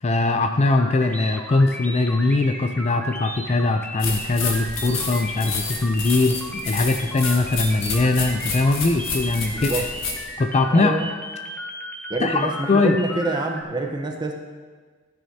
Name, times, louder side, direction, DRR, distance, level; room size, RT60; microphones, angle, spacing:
voice 1, 0.0-9.9 10.4-10.9 12.2-13.0, left 2 dB, 30° left, 6 dB, 0.4 m, -21 dB
sound 1, 0.6-13.6, left 1 dB, 10° left, 0.8 m, -35 dB
sound 2, 4.0-10.2, left 4 dB, 65° left, 1.6 m, -30 dB
voice 2, 9.5-9.9 10.7-11.1 12.1-14.3, right 2 dB, 20° right, 2 dB, 0.9 m, -26 dB
14.0 x 9.1 x 2.8 m, 1.5 s
head